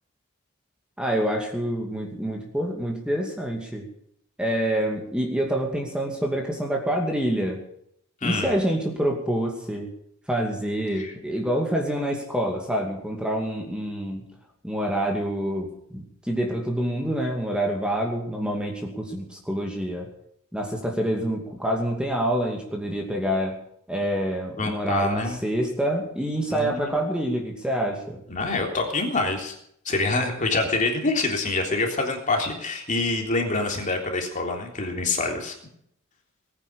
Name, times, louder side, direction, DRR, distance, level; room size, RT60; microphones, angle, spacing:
voice 1, 1.0-3.9 4.4-7.6 8.2-9.9 10.3-14.3 14.6-20.1 20.5-23.6 23.9-28.2, right 1 dB, 5° right, 1 dB, 2.4 m, -27 dB
voice 2, 8.2-8.6 11.0-11.1 24.6-25.4 26.5-27.0 28.3-29.6 29.9-35.6, left 3 dB, 35° left, 2 dB, 3.5 m, -26 dB
20.0 x 9.9 x 7.0 m, 0.70 s
head